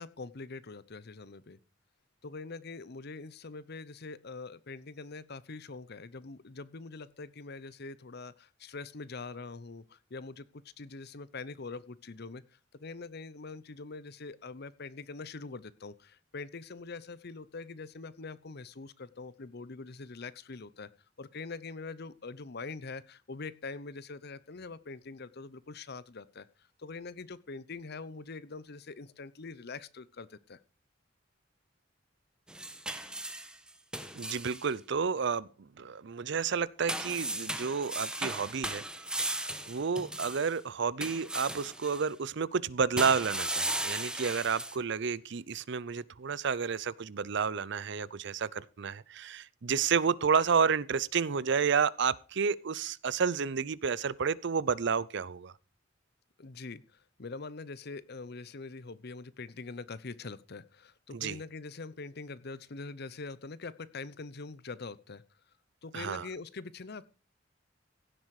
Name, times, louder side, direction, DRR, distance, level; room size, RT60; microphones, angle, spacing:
voice 1, 0.0-1.6 2.2-12.4 12.7-20.9 21.2-26.5 26.8-30.6 56.4-65.2 65.8-67.1, left 3 dB, 55° left, 0.8 m, -43 dB
sound 1, 32.5-34.7 36.9-40.6 41.0-42.0 43.0-44.8, right 1 dB, 5° right, 1.1 m, -36 dB
voice 2, 34.1-35.5 35.8-38.8 39.2-55.5 61.1-61.4 65.9-66.3, right 6 dB, 65° right, 0.6 m, -30 dB
16.0 x 7.7 x 4.8 m
head